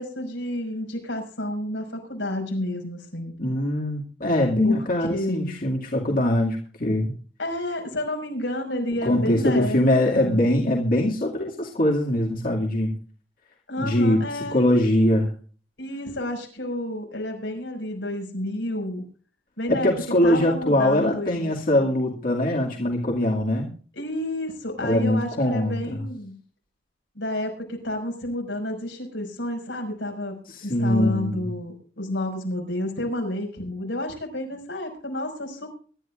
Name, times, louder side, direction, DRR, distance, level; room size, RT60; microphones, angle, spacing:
voice 1, 0.0-3.3 4.6-5.5 7.4-9.8 10.1-10.4 13.7-14.6 15.8-19.1 19.6-19.9 20.2-21.9 23.9-26.4 27.1-35.8, left 1 dB, 90° left, 2 dB, 5.8 m, -30 dB
voice 2, 3.4-7.1 9.0-12.9 13.8-15.3 19.7-23.7 24.8-26.0 30.5-31.5, left 1 dB, 50° left, -1 dB, 2.3 m, -22 dB
23.5 x 12.5 x 2.5 m, 0.41 s
head